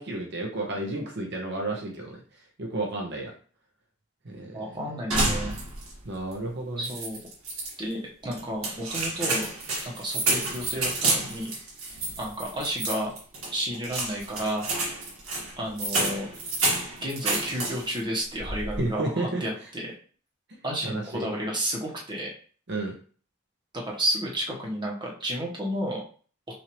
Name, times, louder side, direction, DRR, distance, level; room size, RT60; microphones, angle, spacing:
voice 1, 0.0-2.2 2.6-3.3 4.2-4.6 6.0-6.9 18.8-19.4 20.8-21.3 22.7-22.9, right 2 dB, 55° right, 0 dB, 0.9 m, -31 dB
voice 2, 4.5-5.6 6.8-7.2 7.8-9.5 9.8-11.5 12.2-13.1 13.5-14.7 15.6-16.3 17.0-19.9 20.6-22.3 23.9-26.0, equal, 20° right, -3 dB, 1.1 m, -31 dB
sound 1, 5.1-6.0 6.3-6.4 6.8-7.7 8.3-18.0 18.4-18.9, right 2 dB, 80° right, 1.9 m, -29 dB
6.0 x 2.7 x 3.1 m, 0.42 s
head